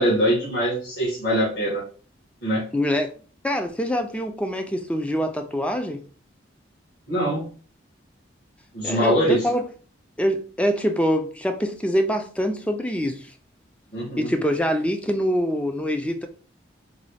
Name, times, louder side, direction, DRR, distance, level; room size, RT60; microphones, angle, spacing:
voice 1, 0.0-1.8 2.4-2.6 7.1-7.4 8.7-9.5 13.9-14.3, equal, 55° left, 1.4 m, -22 dB
voice 2, 2.7-3.1 3.4-6.0 8.8-9.6 10.2-13.3 14.2-16.3, equal, 5° left, 0.3 m, -24 dB
3.8 x 2.3 x 3.2 m
head